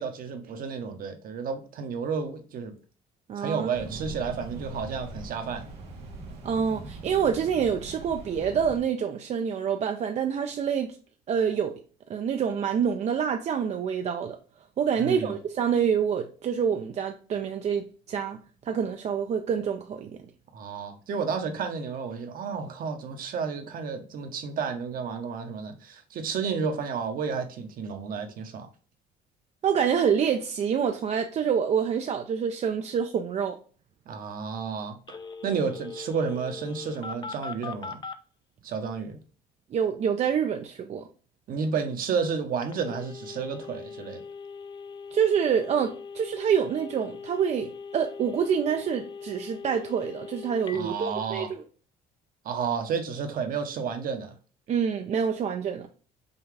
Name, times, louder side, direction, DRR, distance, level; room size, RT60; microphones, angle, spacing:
voice 1, 0.0-2.8 3.4-5.7 15.0-15.3 20.5-28.7 34.1-35.2 35.4-38.0 38.6-39.2 41.5-44.2 50.7-51.5 52.4-54.3, right 5 dB, 55° right, 0.9 m, -31 dB
voice 2, 3.3-3.8 6.4-11.0 11.3-11.8 12.1-14.4 14.8-20.2 29.6-33.6 39.7-41.1 45.1-51.6 54.7-55.9, right 7 dB, 40° right, 0.4 m, -27 dB
sound 1, 3.7-8.8, right 2 dB, 85° right, 1.4 m, -41 dB
Telephone, 35.1-38.2 42.6-50.8, left 5 dB, 25° left, 0.4 m, -41 dB
5.4 x 2.3 x 3.3 m
cardioid pair, 110°, 17 cm